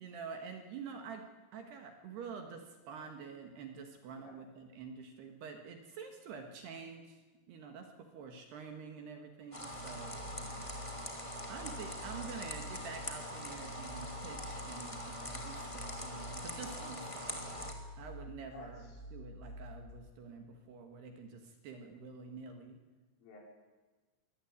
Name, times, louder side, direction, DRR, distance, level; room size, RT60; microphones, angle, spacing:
voice 1, 0.0-7.2 7.5-11.2 11.5-17.4 18.0-22.8, right 5 dB, 65° right, 5 dB, 3.2 m, -48 dB
sound 1, 9.5-17.7, left 1 dB, 20° left, 0.9 m, -43 dB
sound 2, 9.7-19.9, equal, 85° right, 8.8 m, -49 dB
voice 2, 10.0-10.3 18.5-19.0 23.2-23.4, left 3 dB, 70° left, -1 dB, 7.8 m, -54 dB
23.5 x 17.5 x 9.5 m, 1.3 s
omnidirectional pair, 6.0 m